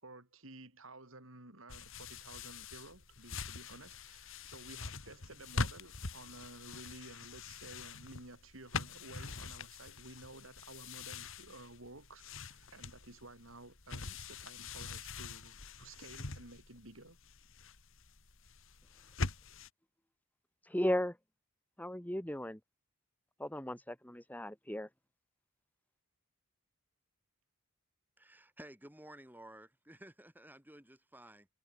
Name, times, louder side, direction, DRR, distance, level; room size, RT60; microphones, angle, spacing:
voice 1, 0.0-17.2, right 2 dB, 60° right, 5.8 m, -53 dB
sound 1, 1.7-19.7, left 3 dB, 60° left, 2.5 m, -44 dB
voice 2, 20.7-21.2 21.8-22.6 23.4-24.9, left 1 dB, 5° left, 1.5 m, -35 dB
voice 3, 28.2-31.5, right 1 dB, 10° right, 5.3 m, -54 dB
head